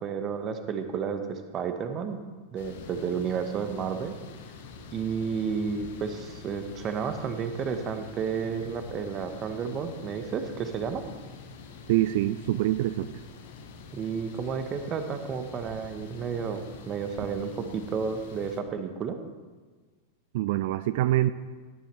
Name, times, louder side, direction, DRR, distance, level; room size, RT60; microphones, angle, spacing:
voice 1, 0.0-2.2 2.5-4.1 4.9-11.0 13.9-19.2, right 6 dB, 30° right, 8 dB, 1.2 m, -31 dB
sound 1, 2.6-18.6, left 5 dB, 55° left, 1.3 m, -46 dB
voice 2, 11.9-13.2 20.3-21.3, right 15 dB, 50° right, 14 dB, 0.4 m, -25 dB
17.0 x 10.5 x 3.4 m, 1.4 s
figure-of-eight pair, 90°, 0 cm